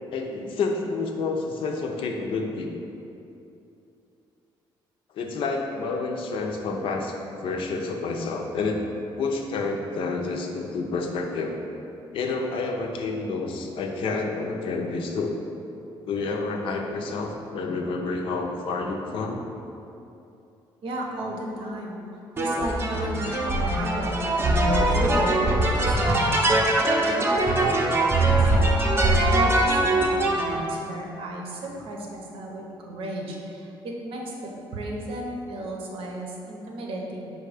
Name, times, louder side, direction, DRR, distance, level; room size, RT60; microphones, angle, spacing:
voice 1, 0.1-2.7 5.1-7.1 7.4-8.9 9.2-11.5 12.1-15.4 16.1-19.4, left 3 dB, 70° left, 2 dB, 0.5 m, -29 dB
voice 2, 20.8-22.0 22.4-37.3, right 1 dB, 75° right, -1 dB, 0.7 m, -35 dB
sound 1, 22.4-30.6, right 1 dB, 25° right, 0.5 m, -22 dB
4.8 x 2.3 x 4.9 m, 2.8 s
cardioid pair, 110°, 9 cm